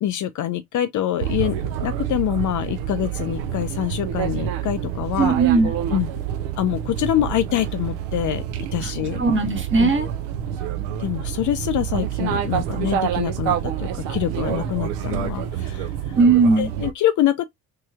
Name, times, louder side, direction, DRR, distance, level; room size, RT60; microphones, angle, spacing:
voice 1, 0.0-5.4 5.9-6.1 6.6-8.4 8.7-9.3 9.8-9.9 11.0-16.1 16.6-17.4, left 12 dB, 45° left, 0.5 m, -25 dB
sound 1, 1.2-16.9, right 9 dB, 70° right, 0.7 m, -27 dB
voice 2, 5.2-5.7 8.8-8.9 9.2-10.1 16.2-16.7, right 4 dB, 30° right, 1.2 m, -18 dB
3.1 x 2.8 x 2.2 m
hypercardioid pair, 45°, 43 cm